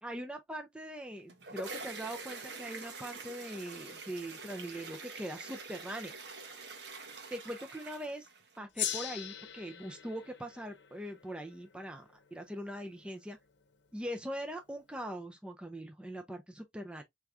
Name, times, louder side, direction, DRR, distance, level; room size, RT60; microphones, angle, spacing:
voice 1, 0.0-6.1 7.3-8.3 8.6-13.4 13.9-17.0, equal, 5° right, 0.5 m, -42 dB
sound 1, 1.1-8.6, right 4 dB, 65° right, 1.0 m, -46 dB
Gong, 8.7-13.5, left 10 dB, 75° left, 0.8 m, -42 dB
4.6 x 3.5 x 2.5 m
head